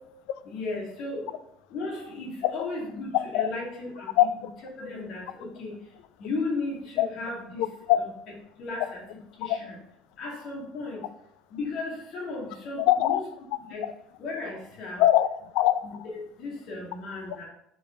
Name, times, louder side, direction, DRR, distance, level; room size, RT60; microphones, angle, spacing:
voice 1, 0.4-1.3 1.7-4.2 4.8-5.8 6.2-7.6 8.0-8.1 8.6-9.0 9.4-9.8 10.2-11.1 11.5-13.2 13.7-13.9 14.2-15.0 15.8-17.5, left 3 dB, 55° left, -3 dB, 2.2 m, -35 dB
voice 2, 3.1-3.5 4.2-4.3 7.0-7.1 7.6-8.0 9.5-9.6 12.8-13.2 13.8-13.9 15.0-15.8, left 13 dB, 75° left, 14 dB, 0.4 m, -22 dB
4.9 x 4.9 x 4.6 m, 0.77 s
cardioid pair, 145°, 0 cm